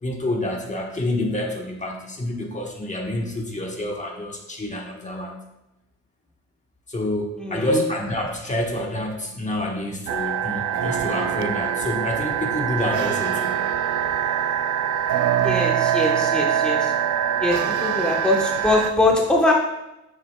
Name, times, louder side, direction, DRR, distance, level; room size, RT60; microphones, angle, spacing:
voice 1, 0.0-5.4 6.9-13.6, left 1 dB, 25° left, 0 dB, 1.2 m, -28 dB
voice 2, 7.4-7.8 15.4-16.9 17.4-19.5, left 2 dB, 5° left, -1 dB, 1.0 m, -22 dB
sound 1, 10.1-18.9, right 9 dB, 75° right, 0.4 m, -23 dB
9.6 x 7.6 x 2.2 m, 0.93 s
wide cardioid pair, 130°, 30 cm